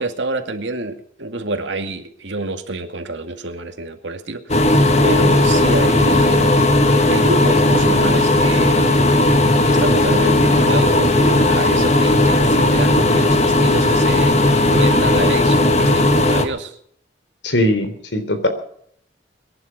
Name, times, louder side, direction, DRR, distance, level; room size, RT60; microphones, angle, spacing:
voice 1, 0.0-4.7 5.0-6.6 7.1-9.0 9.7-16.8, right 2 dB, 85° right, 7 dB, 2.3 m, -27 dB
sound 1, 4.5-16.4, left 1 dB, 35° left, 1.7 m, -15 dB
voice 2, 17.4-18.5, left 1 dB, 85° left, 9 dB, 3.5 m, -19 dB
23.0 x 11.0 x 5.2 m, 0.65 s
head